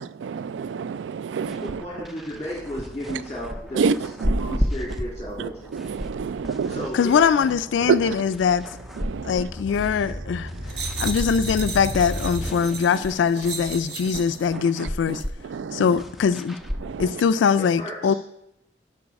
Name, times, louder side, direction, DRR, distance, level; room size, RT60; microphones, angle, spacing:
voice 1, 0.0-1.8 3.1-3.2 3.7-4.6 5.4-6.9 7.8-8.2 9.0-9.5 10.8-10.9 14.1-14.2 14.5-16.0 16.8-17.2, right 6 dB, 85° right, 0.3 m, -28 dB
sound 1, 1.4-17.1, equal, ahead, 0.4 m, -34 dB
voice 2, 1.6-4.1 4.3-5.6 6.7-7.5 17.6-18.1, equal, 20° left, 1.8 m, -34 dB
sound 2, 2.2-12.5, equal, 40° right, 3.6 m, -37 dB
voice 3, 6.9-8.7 9.2-10.5 11.0-15.2 15.7-16.6 17.0-18.1, left 6 dB, 85° left, 0.3 m, -22 dB
sound 3, 10.7-14.4 15.1-15.3, right 5 dB, 65° right, 1.1 m, -35 dB
11.5 x 4.8 x 5.2 m
head